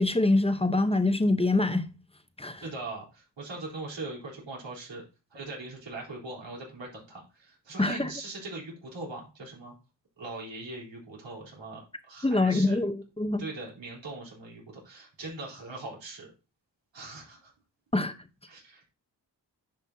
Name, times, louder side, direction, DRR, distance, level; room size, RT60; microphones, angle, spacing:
voice 1, 0.0-1.9 2.4-2.6 7.8-8.1 12.2-13.4 17.9-18.1, left 2 dB, 15° left, 0.9 m, -25 dB
voice 2, 2.6-5.0 5.3-9.7 10.2-12.8 13.4-16.3 16.9-17.5 18.5-18.9, right 2 dB, 85° right, 4.0 m, -41 dB
10.0 x 5.5 x 2.8 m
cardioid pair, 65°, 43 cm